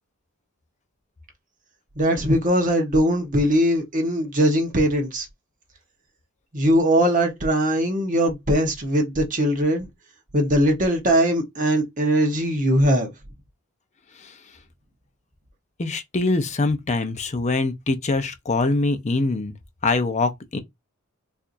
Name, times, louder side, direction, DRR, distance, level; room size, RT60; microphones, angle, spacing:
voice 1, 2.0-5.3 6.5-9.9 10.3-13.1, equal, 40° right, 1.0 m, -20 dB
voice 2, 15.8-19.5 19.8-20.6, left 3 dB, 35° left, 0.6 m, -23 dB
4.5 x 2.6 x 2.5 m
head